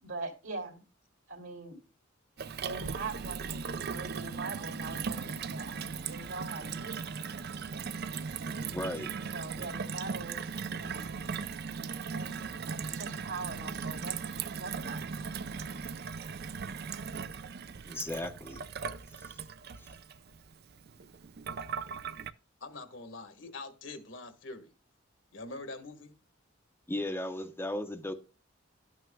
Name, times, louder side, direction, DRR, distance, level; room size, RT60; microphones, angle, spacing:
voice 1, 0.0-0.8 1.3-1.8 2.6-7.1 9.3-11.1 12.1-15.2, right 3 dB, 70° right, 2.7 m, -42 dB
Gurgling / Water tap faucet / Sink (filling or washing), 2.4-22.3, right 6 dB, 50° right, 0.5 m, -38 dB
voice 2, 8.7-9.1 17.9-18.6 19.1-19.4 19.8-19.9 26.9-28.1, left 1 dB, 10° left, 0.7 m, -36 dB
voice 3, 22.6-24.7 25.3-26.1, left 3 dB, 65° left, 1.4 m, -44 dB
12.0 x 9.3 x 2.2 m
head